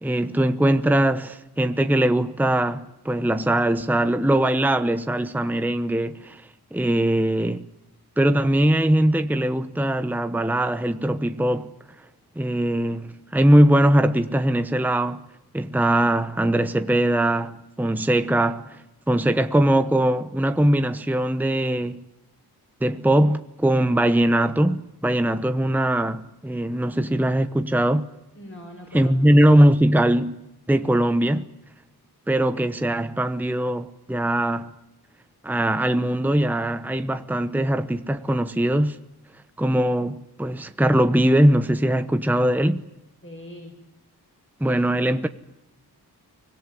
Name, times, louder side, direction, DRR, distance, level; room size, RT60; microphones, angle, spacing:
voice 1, 0.0-6.4 6.7-7.7 8.2-11.7 12.4-15.2 15.5-18.8 19.1-22.0 22.8-28.1 28.9-30.4 30.7-31.5 32.3-34.7 35.4-39.0 39.6-42.8 44.6-45.3, right 1 dB, 5° right, 1.0 m, -21 dB
voice 2, 28.3-29.6 43.2-43.8 44.6-45.1, equal, 30° left, 6.4 m, -42 dB
24.5 x 18.0 x 9.9 m
wide cardioid pair, 95°, 39 cm